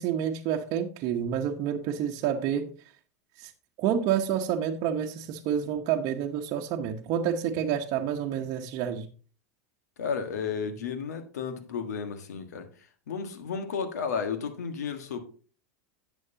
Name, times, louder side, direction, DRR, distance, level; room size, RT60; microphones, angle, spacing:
voice 1, 0.0-2.7 3.4-3.5 3.8-9.1, right 9 dB, 50° right, 1.0 m, -29 dB
voice 2, 10.0-15.2, left 6 dB, 85° left, 1.6 m, -33 dB
11.0 x 8.0 x 2.8 m
hypercardioid pair, 105°, 9 cm